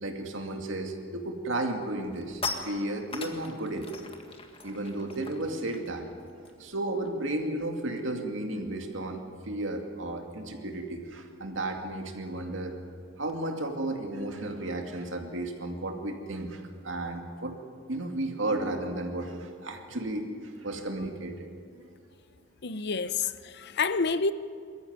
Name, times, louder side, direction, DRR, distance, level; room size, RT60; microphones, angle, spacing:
voice 1, 0.0-3.9 4.6-6.1 6.6-12.7 13.2-17.5 17.9-20.2 20.6-21.3, right 1 dB, 70° right, 2.4 m, -33 dB
sound 1, 1.3-1.4 1.7-7.6 7.9-8.1 8.4-13.4, left 4 dB, 30° left, 1.8 m, -43 dB
voice 2, 22.6-24.3, left 4 dB, 60° left, 0.7 m, -28 dB
22.5 x 14.0 x 9.5 m
head